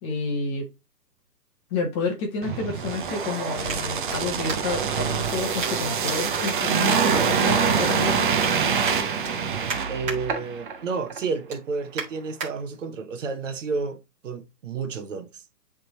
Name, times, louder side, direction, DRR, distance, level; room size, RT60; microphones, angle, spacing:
voice 1, 0.0-0.7 1.7-8.3, left 3 dB, 15° left, 1.0 m, -30 dB
sound 1, 0.8-4.9 5.6-6.2 6.4-7.8 8.1-8.5 8.8-10.2 10.6-10.9 11.2-12.5 13.1-13.2, right 4 dB, 15° right, 2.0 m, -36 dB
sound 2, 2.4-10.8 11.1-11.2, right 6 dB, 30° right, 0.7 m, -25 dB
voice 2, 9.9-15.4, right 4 dB, 50° right, 1.0 m, -31 dB
10.5 x 3.6 x 3.0 m
hypercardioid pair, 145°, 50 cm